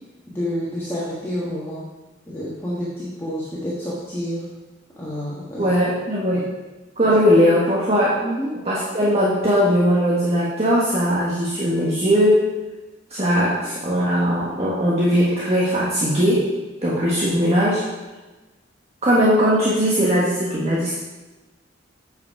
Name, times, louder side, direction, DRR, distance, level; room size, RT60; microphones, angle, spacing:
voice 1, 0.3-1.9 2.3-4.5 5.0-5.7 6.3-6.4 7.0-7.1 8.2-8.5, equal, 15° left, -9 dB, 1.5 m, -29 dB
voice 2, 5.6-6.5 7.0-8.2 8.6-12.4 13.1-16.5 16.8-17.8 19.0-20.9, equal, 35° right, -7 dB, 1.4 m, -19 dB
8.1 x 5.4 x 4.8 m, 1.2 s
head